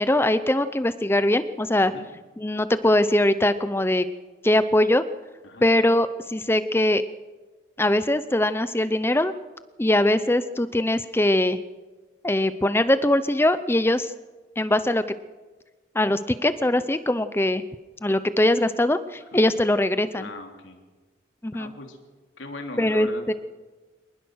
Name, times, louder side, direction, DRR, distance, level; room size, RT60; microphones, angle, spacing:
voice 1, 0.0-1.9 2.4-4.1 4.4-5.0 5.6-7.0 7.8-9.3 9.8-11.6 12.2-14.1 14.6-15.0 15.9-17.6 18.0-20.3 21.4-21.7 22.8-23.3, left 1 dB, 10° left, 13 dB, 0.7 m, -21 dB
voice 2, 20.2-20.8 21.5-22.0 22.4-23.3, left 2 dB, 80° left, 3 dB, 3.4 m, -39 dB
25.5 x 19.5 x 6.4 m, 1.3 s
head